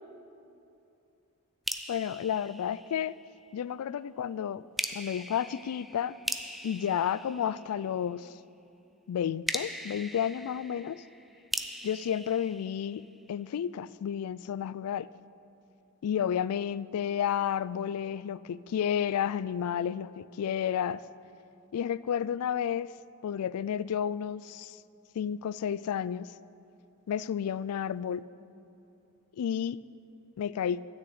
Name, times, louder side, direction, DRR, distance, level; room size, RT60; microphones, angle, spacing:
sound 1, 1.7-3.4 4.8-8.1 9.5-13.4, equal, ahead, 0.3 m, -40 dB
voice 1, 1.9-3.1 3.5-4.6 4.9-6.1 6.6-8.3 9.1-11.0 11.8-15.1 16.0-21.0 21.7-22.9 23.2-24.8 25.2-26.3 27.1-28.2 29.4-29.8 30.4-30.9, left 8 dB, 80° left, 19 dB, 0.3 m, -31 dB
13.0 x 6.6 x 8.5 m, 2.7 s
head